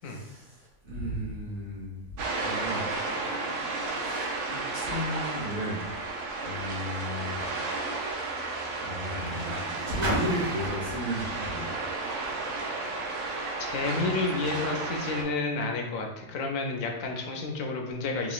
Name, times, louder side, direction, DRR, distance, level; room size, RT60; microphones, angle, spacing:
voice 1, 0.0-2.0 2.3-2.9 4.0-5.9 6.4-7.4 8.8-9.6 9.8-11.7, equal, 90° right, -5 dB, 1.7 m, -34 dB
sound 1, 2.2-15.2, right 3 dB, 65° right, 0.9 m, -33 dB
Car, 6.7-13.0 13.8-13.9, right 1 dB, 50° right, 0.5 m, -38 dB
voice 2, 13.7-18.3, left 3 dB, 75° left, 2 dB, 1.0 m, -30 dB
3.8 x 3.0 x 2.4 m, 0.98 s
omnidirectional pair, 1.4 m